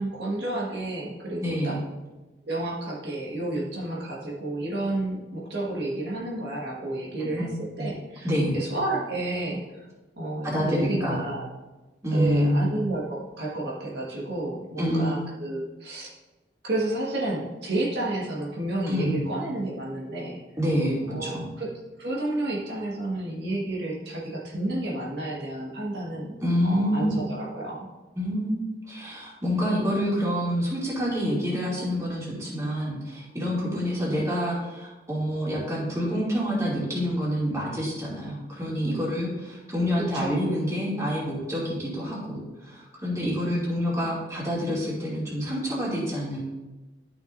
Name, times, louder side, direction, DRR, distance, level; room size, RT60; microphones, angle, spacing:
voice 1, 0.0-1.8 2.4-8.3 8.5-9.6 10.2-11.5 12.1-16.1 16.6-20.4 21.1-21.7 22.0-26.3 26.6-27.9 40.0-40.4, right 1 dB, 70° right, -4 dB, 1.6 m, -31 dB
voice 2, 1.4-1.8 7.2-7.5 7.8-7.9 8.2-8.6 10.4-11.2 12.0-12.7 14.8-15.2 18.9-19.2 20.6-21.5 26.4-27.2 28.1-46.4, equal, 20° right, -6 dB, 2.6 m, -27 dB
12.5 x 6.1 x 2.6 m, 1.1 s
head